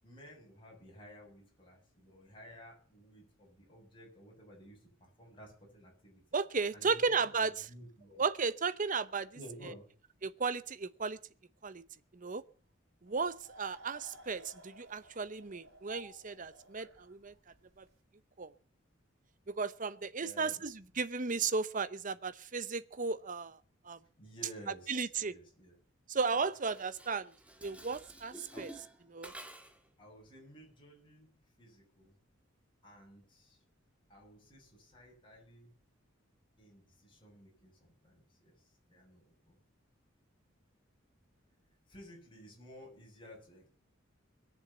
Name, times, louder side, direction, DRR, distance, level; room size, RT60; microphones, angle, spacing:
voice 1, 0.0-6.2 6.6-8.3 9.3-9.9 20.2-20.7 24.2-25.8 26.3-26.5 28.5-28.7 30.0-31.3 31.6-32.1 32.8-33.6 34.1-35.7 36.6-39.6 41.9-43.7, equal, 25° left, 7.5 m, -54 dB
voice 2, 6.3-7.7 8.2-9.3 10.2-11.2 11.6-11.8 12.1-12.4 13.0-17.3 17.8-17.9 18.4-18.5 19.6-23.6 23.9-24.0 24.9-25.3 26.1-27.3 27.6-28.7 29.1-29.3, right 4 dB, 40° right, 0.8 m, -34 dB
sound 1, 13.1-18.0, right 1 dB, 75° right, 4.0 m, -56 dB
Dishes pots and pans, 26.5-29.9, right 1 dB, 5° right, 1.7 m, -51 dB
21.5 x 7.3 x 7.1 m
head